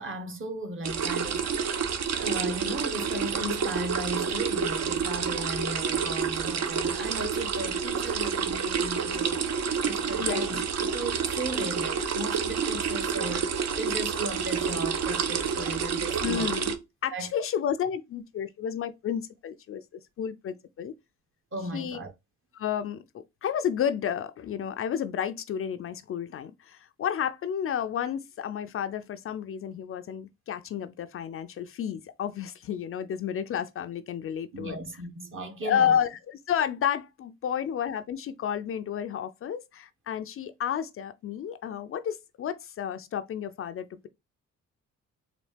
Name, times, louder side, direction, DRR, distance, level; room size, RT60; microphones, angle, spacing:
voice 1, 0.0-1.8 2.2-16.5 17.1-17.3 21.5-22.1 34.5-36.0, right 1 dB, 40° right, 1.1 m, -36 dB
sound 1, 0.8-16.8, right 6 dB, 60° right, 0.7 m, -29 dB
voice 2, 16.2-16.7 17.0-19.8 20.2-20.9 21.7-22.0 22.5-34.8 35.6-44.1, left 8 dB, 45° left, 0.4 m, -31 dB
4.1 x 2.7 x 3.2 m
cardioid pair, 90°, 30 cm